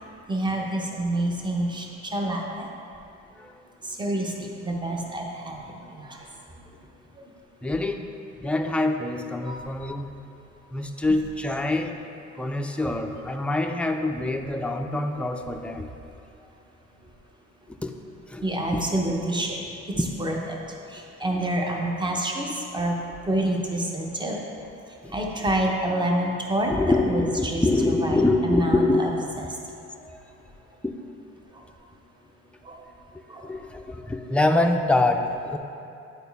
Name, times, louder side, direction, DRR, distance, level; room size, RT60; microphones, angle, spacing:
voice 1, 0.3-2.6 4.0-5.6 6.0-6.1 9.5-9.6 18.4-19.6 20.2-20.6 20.9-22.9 23.3-24.4 25.1-29.1 29.4-29.5 32.6-32.8 33.3-33.4, right 1 dB, 15° right, 0 dB, 0.9 m, -27 dB
voice 2, 7.6-8.1 8.4-10.1 10.7-12.0 12.4-15.9 17.8-17.9 18.3-18.4 18.7-18.8 20.0-20.1 25.0-25.2 26.7-29.3 30.0-30.1 30.8-30.9 33.4-35.6, left 2 dB, 5° left, 4 dB, 0.4 m, -25 dB
9.0 x 4.2 x 3.5 m, 2.7 s
cardioid pair, 90°, 30 cm